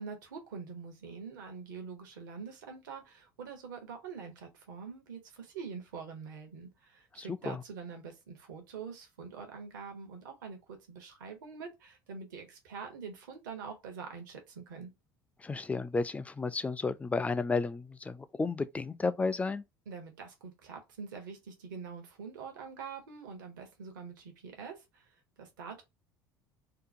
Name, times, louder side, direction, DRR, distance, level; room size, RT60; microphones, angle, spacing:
voice 1, 0.0-14.9 19.9-25.8, right 5 dB, 75° right, 0.9 m, -45 dB
voice 2, 7.2-7.6 15.4-19.6, left 3 dB, 15° left, 0.3 m, -32 dB
2.8 x 2.2 x 2.5 m
hypercardioid pair, 65°, 11 cm